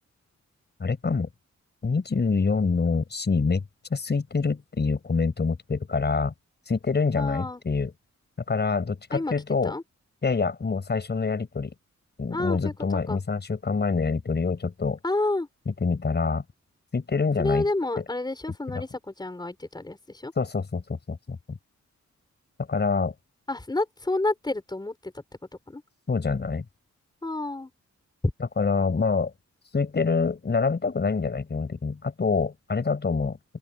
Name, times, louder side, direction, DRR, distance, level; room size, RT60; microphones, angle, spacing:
voice 1, 0.8-1.3 1.8-3.6 3.9-6.3 6.7-7.9 8.5-9.7 10.2-11.7 12.2-15.0 15.7-16.4 16.9-17.7 18.0-18.1 18.7-18.8 20.4-21.6 22.6-23.1 26.1-26.6 28.6-29.3 29.7-33.4, left 4 dB, 35° left, 5.4 m, -26 dB
voice 2, 7.2-7.6 9.1-9.3 9.6-9.8 12.3-13.2 15.0-15.5 17.4-20.3 23.5-25.2 25.7-25.8 27.2-27.7, left 2 dB, 15° left, 5.1 m, -29 dB
open air
wide cardioid pair, 175°, 29 cm